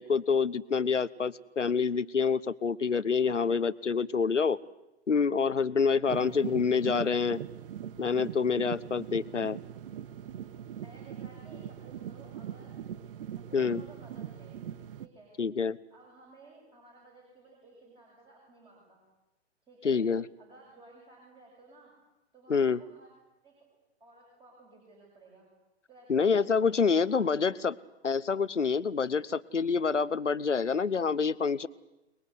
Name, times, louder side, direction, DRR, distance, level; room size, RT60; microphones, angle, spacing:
voice 1, 0.0-4.6 5.1-7.4 8.0-9.6 13.5-13.8 15.4-15.8 19.8-20.2 22.5-22.8 26.1-27.7 28.0-31.7, left 5 dB, 90° left, 17 dB, 1.1 m, -27 dB
voice 2, 3.2-3.5 6.2-6.8 10.8-12.8 13.4-14.6 15.0-15.4 15.9-19.0 19.6-20.0 20.4-21.9 22.3-23.1 23.4-23.6 24.0-25.5 25.9-27.8, right 3 dB, 15° right, -1 dB, 7.6 m, -56 dB
sound 1, 6.1-15.1, right 10 dB, 50° right, 1.2 m, -41 dB
29.5 x 21.0 x 8.3 m, 0.98 s
figure-of-eight pair, 120°, 35 cm